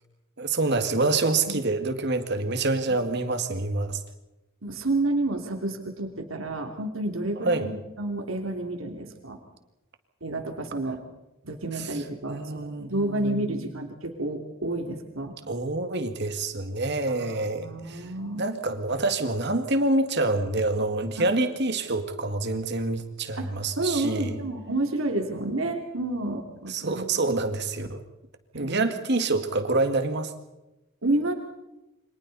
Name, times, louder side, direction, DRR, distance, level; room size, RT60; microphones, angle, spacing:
voice 1, 0.4-4.0 7.4-7.7 12.3-13.6 15.5-18.1 18.4-24.4 26.7-28.0 28.5-30.3, right 2 dB, 55° right, 8 dB, 2.0 m, -27 dB
voice 2, 4.6-9.4 10.2-11.0 11.4-15.3 17.1-18.4 21.2-21.3 23.4-27.1 28.5-28.9 29.3-29.4 31.0-31.3, right 2 dB, 80° right, 3 dB, 3.0 m, -30 dB
29.0 x 25.0 x 4.2 m, 0.96 s
head